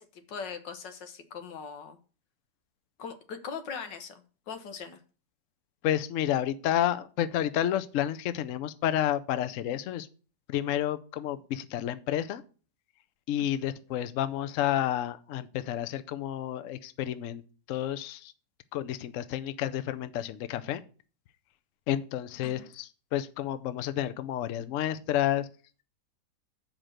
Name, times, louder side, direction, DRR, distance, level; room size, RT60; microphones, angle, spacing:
voice 1, 0.0-2.0 3.0-5.0 13.4-13.5 22.4-22.7, left 6 dB, 90° left, 8 dB, 1.7 m, -41 dB
voice 2, 5.8-10.1 10.5-12.4 13.3-17.4 17.7-18.3 18.7-20.8 21.9-25.5, left 11 dB, 65° left, 12 dB, 0.8 m, -30 dB
7.3 x 5.1 x 6.3 m, 0.38 s
omnidirectional pair, 1.9 m